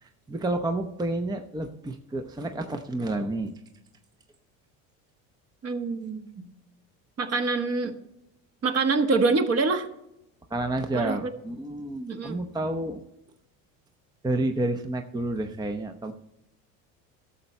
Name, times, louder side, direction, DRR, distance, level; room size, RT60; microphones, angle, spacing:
voice 1, 0.0-3.5 10.5-13.0 14.2-16.1, right 2 dB, 10° right, 6 dB, 0.7 m, -30 dB
voice 2, 5.6-6.5 7.2-7.9 8.6-9.9 10.9-11.3 12.1-12.4, right 3 dB, 35° right, 6 dB, 1.4 m, -25 dB
12.5 x 6.9 x 4.3 m, 0.85 s
supercardioid pair, 85°, 41 cm